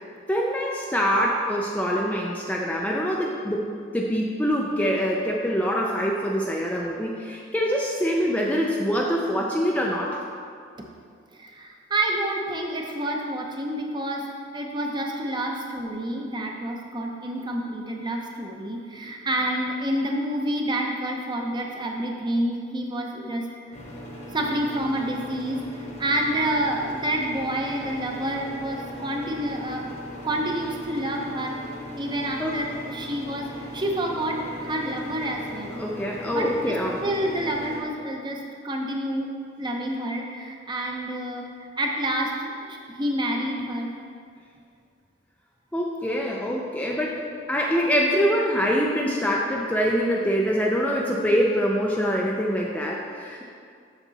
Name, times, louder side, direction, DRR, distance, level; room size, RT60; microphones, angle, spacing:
voice 1, 0.3-3.7 3.9-10.2 32.4-32.6 35.8-37.0 45.7-47.2 47.5-53.4, equal, 5° left, -2 dB, 0.4 m, -24 dB
voice 2, 11.3-23.8 24.3-29.9 30.2-31.6 32.0-35.8 36.3-43.9, right 1 dB, 25° right, 1 dB, 0.7 m, -28 dB
sound 1, 23.7-37.8, equal, 35° left, 1.1 m, -39 dB
7.3 x 6.7 x 4.0 m, 2.2 s
head